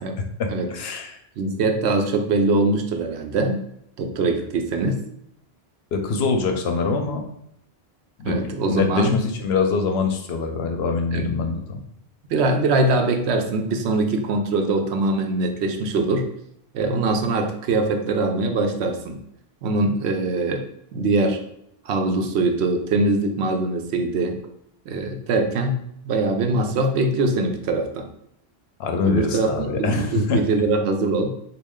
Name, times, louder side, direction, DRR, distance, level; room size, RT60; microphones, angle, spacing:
voice 1, 0.4-1.2 5.9-7.2 8.2-11.8 28.8-30.4, left 4 dB, 80° left, 4 dB, 0.8 m, -24 dB
voice 2, 1.4-3.6 4.0-5.0 8.2-9.2 11.1-11.4 12.3-16.3 16.7-19.2 19.6-20.6 20.9-21.4 21.9-24.4 24.9-25.8 26.1-28.1 29.0-31.3, right 2 dB, 90° right, 5 dB, 0.8 m, -22 dB
3.1 x 2.4 x 3.5 m, 0.73 s
omnidirectional pair, 1.1 m